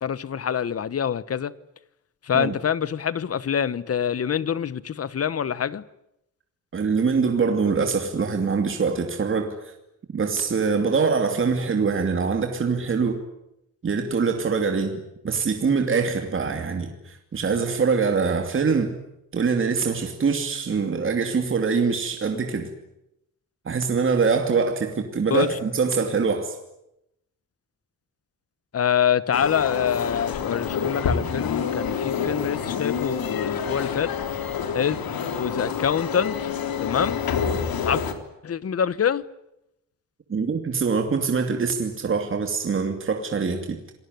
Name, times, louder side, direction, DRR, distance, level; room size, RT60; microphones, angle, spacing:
voice 1, 0.0-1.5 2.2-5.8 25.3-25.5 28.7-34.1 34.7-35.0 35.3-36.5 36.8-37.2 37.9-38.0 38.4-39.2, left 8 dB, 45° left, 1.1 m, -25 dB
voice 2, 6.7-9.7 10.1-13.2 13.8-15.0 15.2-19.0 19.3-22.7 23.6-26.6 40.3-43.8, right 5 dB, 35° right, 2.7 m, -24 dB
sound 1, 29.3-38.1, left 6 dB, 90° left, 3.5 m, -28 dB
28.0 x 20.5 x 9.4 m
wide cardioid pair, 165°, 34 cm